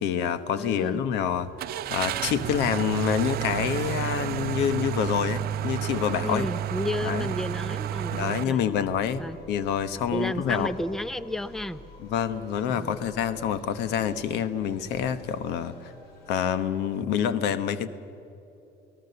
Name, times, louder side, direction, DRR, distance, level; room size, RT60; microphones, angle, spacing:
voice 1, 0.0-1.5 1.9-6.5 7.0-7.3 8.1-10.7 12.1-15.9 16.3-17.9, left 8 dB, 90° left, 13 dB, 1.1 m, -27 dB
voice 2, 0.6-1.0 6.2-8.7 9.2-9.4 10.1-11.8 12.7-13.0, left 1 dB, ahead, 15 dB, 0.6 m, -32 dB
sound 1, 1.2-16.7, left 2 dB, 65° left, 6.2 m, -50 dB
Car / Engine starting, 1.6-8.4, right 12 dB, 65° right, 0.6 m, -31 dB
28.5 x 18.0 x 6.9 m, 3.0 s
cardioid pair, 110°, 17 cm